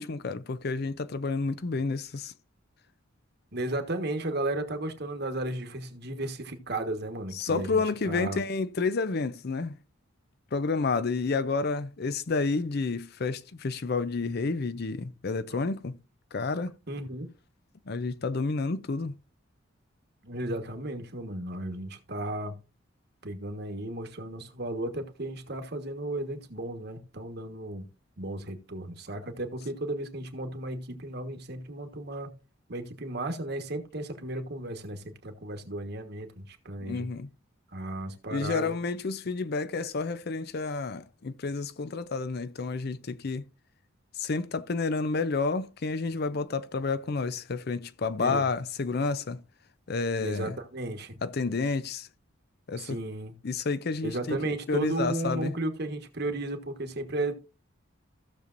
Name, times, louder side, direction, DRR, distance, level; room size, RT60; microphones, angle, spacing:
voice 1, 0.0-2.3 7.3-9.8 10.5-15.9 16.3-16.7 17.9-19.1 36.8-37.3 38.3-43.4 44.2-49.4 49.9-50.6 51.2-52.1 52.7-53.0 53.4-54.4 54.7-55.5, left 4 dB, 50° left, 0.5 m, -30 dB
voice 2, 3.5-8.4 15.5-15.6 16.9-17.3 20.2-22.6 23.2-27.9 28.2-32.3 32.7-37.1 37.7-38.8 48.2-48.4 50.2-51.2 52.8-53.3 54.0-57.3, right 1 dB, 50° right, 1.4 m, -34 dB
15.5 x 6.7 x 2.6 m
head